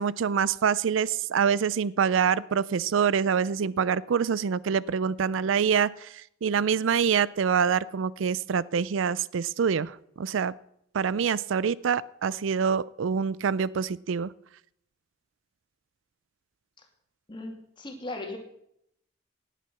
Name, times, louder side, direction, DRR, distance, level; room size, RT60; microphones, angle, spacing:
voice 1, 0.0-10.5 10.9-14.3, right 7 dB, 80° right, 20 dB, 0.4 m, -26 dB
voice 2, 17.3-18.4, left 2 dB, 25° left, 2 dB, 2.5 m, -37 dB
17.5 x 9.2 x 5.9 m, 0.75 s
head